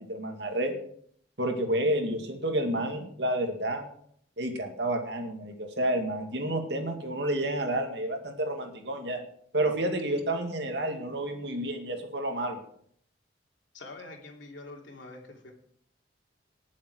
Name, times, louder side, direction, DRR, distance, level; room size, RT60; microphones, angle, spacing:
voice 1, 0.1-0.7 1.4-3.9 4.4-9.2 9.5-12.6, right 1 dB, 60° right, 4 dB, 2.2 m, -30 dB
voice 2, 13.7-15.5, left 2 dB, 85° left, 1 dB, 2.9 m, -45 dB
19.0 x 7.3 x 4.7 m, 0.63 s
head